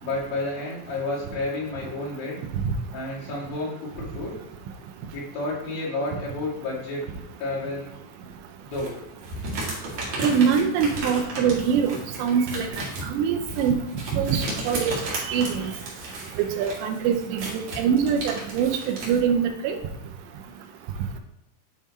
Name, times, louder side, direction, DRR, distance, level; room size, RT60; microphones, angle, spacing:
voice 1, 0.0-2.4 2.9-4.4 5.1-7.0 7.4-7.9 8.6-9.0, left 2 dB, 60° left, -6 dB, 3.8 m, -30 dB
sound 1, 8.7-19.2, right 2 dB, 50° right, 2.7 m, -34 dB
voice 2, 10.2-12.7 13.1-13.8 14.1-14.9 15.3-15.6 16.6-19.8, right 7 dB, 90° right, 5 dB, 3.1 m, -23 dB
9.4 x 3.7 x 4.2 m, 0.95 s
omnidirectional pair, 4.9 m